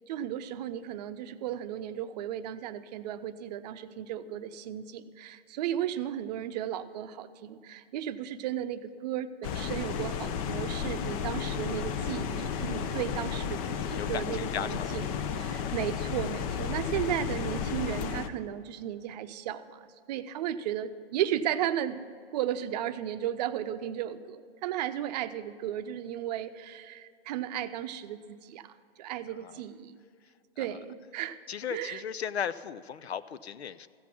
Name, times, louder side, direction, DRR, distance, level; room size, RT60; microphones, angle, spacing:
voice 1, 0.1-22.0 22.3-30.0 30.6-31.4 31.7-32.0, right 11 dB, 40° right, 11 dB, 0.7 m, -35 dB
sound 1, 9.4-18.3, left 7 dB, 35° left, 0.7 m, -33 dB
voice 2, 13.9-15.0 29.4-29.6 30.6-30.8 31.5-33.9, left 8 dB, 85° left, 15 dB, 0.6 m, -36 dB
14.5 x 8.2 x 6.0 m, 2.3 s
hypercardioid pair, 120°, 31 cm